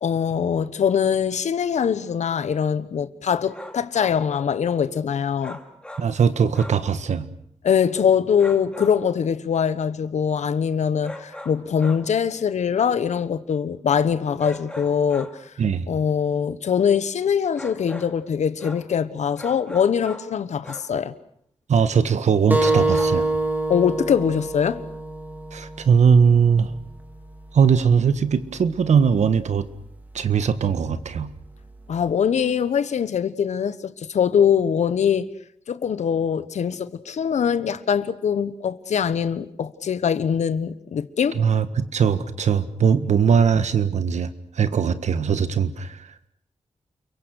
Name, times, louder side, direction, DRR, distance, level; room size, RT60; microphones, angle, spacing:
voice 1, 0.0-5.6 7.6-15.5 15.9-21.1 23.7-24.8 31.9-35.3 35.7-41.4, left 7 dB, 90° left, 1.3 m, -23 dB
sound 1, 3.4-4.2 5.4-6.2 6.5-6.9 8.4-9.1 11.0-12.1 14.4-15.5 17.5-18.2 18.6-18.9 19.4-20.4 20.6-21.0 22.6-23.2, left 1 dB, 10° left, 2.6 m, -39 dB
voice 2, 6.0-7.3 15.6-15.8 21.7-23.3 25.5-26.7 27.5-29.7 30.1-31.3 41.4-44.3 44.5-46.3, right 6 dB, 80° right, 1.6 m, -20 dB
sound 2, 22.5-27.6, right 2 dB, 15° right, 2.5 m, -26 dB
29.5 x 23.0 x 6.5 m
wide cardioid pair, 115°, 12 cm